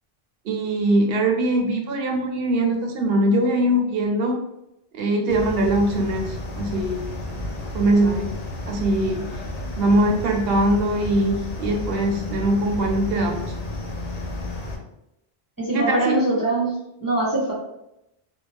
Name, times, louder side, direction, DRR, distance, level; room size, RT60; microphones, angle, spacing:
voice 1, 0.4-4.4 4.9-7.1 7.7-8.3 8.7-9.3 9.8-13.5 15.7-16.2, right 1 dB, 75° right, 2 dB, 0.8 m, -22 dB
sound 1, 5.3-14.8, left 1 dB, 50° left, 0.5 m, -32 dB
voice 2, 15.6-16.7 17.0-17.5, right 2 dB, 20° right, -8 dB, 0.8 m, -22 dB
2.5 x 2.1 x 3.3 m, 0.85 s
omnidirectional pair, 1.0 m